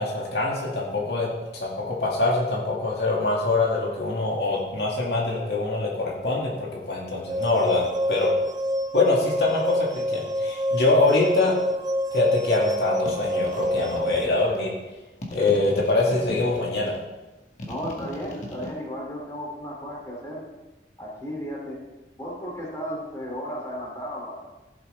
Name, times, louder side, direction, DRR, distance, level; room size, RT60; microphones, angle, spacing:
voice 1, 0.0-8.3 8.9-11.5 12.1-14.7 15.3-16.9, left 3 dB, 75° left, -3 dB, 2.3 m, -24 dB
sound 1, 7.3-14.3, equal, 20° right, 0.5 m, -27 dB
sound 2, 13.0-14.6 15.2-17.0 17.6-18.7, left 1 dB, 45° left, 1.8 m, -38 dB
voice 2, 17.6-20.4 21.0-21.8 22.2-24.4, equal, 20° left, -3 dB, 2.8 m, -34 dB
15.5 x 7.7 x 3.5 m, 1.1 s
head